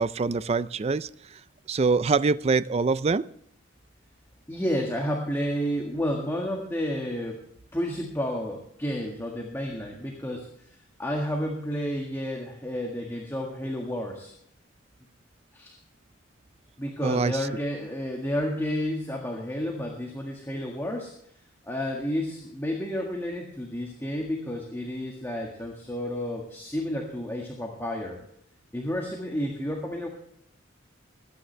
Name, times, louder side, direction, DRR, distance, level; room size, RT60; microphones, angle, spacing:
voice 1, 0.0-1.4 1.7-3.3 17.0-17.5, right 4 dB, 30° right, 17 dB, 0.4 m, -25 dB
voice 2, 4.5-7.4 7.7-10.7 11.0-14.3 15.5-15.8 16.8-21.1 21.6-28.2 28.7-30.1, equal, 10° left, 0 dB, 1.7 m, -31 dB
21.0 x 9.8 x 3.3 m, 0.69 s
head